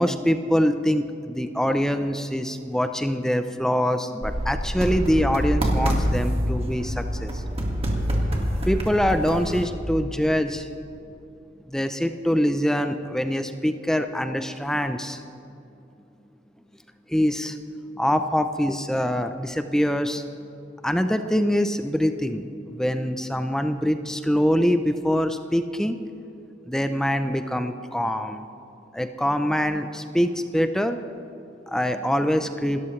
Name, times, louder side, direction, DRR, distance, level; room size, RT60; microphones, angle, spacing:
voice 1, 0.0-6.9 7.2-7.3 8.7-10.6 11.7-15.2 17.1-17.5 18.0-20.2 20.8-22.4 22.8-26.0 26.7-28.4 28.9-31.0 31.7-32.8, equal, 5° left, 8 dB, 0.5 m, -24 dB
sound 1, 4.2-9.7, equal, 35° right, 1.9 m, -26 dB
27.5 x 13.5 x 3.2 m, 2.7 s
head